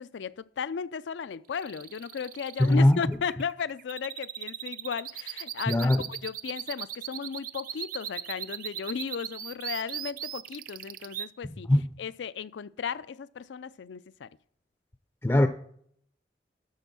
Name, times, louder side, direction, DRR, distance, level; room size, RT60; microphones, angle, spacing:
voice 1, 0.0-11.7 12.0-14.3, left 6 dB, 85° left, 0.4 m, -35 dB
sound 1, 1.5-11.3, right 10 dB, 50° right, 0.4 m, -38 dB
voice 2, 2.6-3.1 5.7-6.0 11.7-11.9 15.2-15.5, left 1 dB, 15° left, 0.4 m, -21 dB
12.0 x 4.3 x 6.1 m
head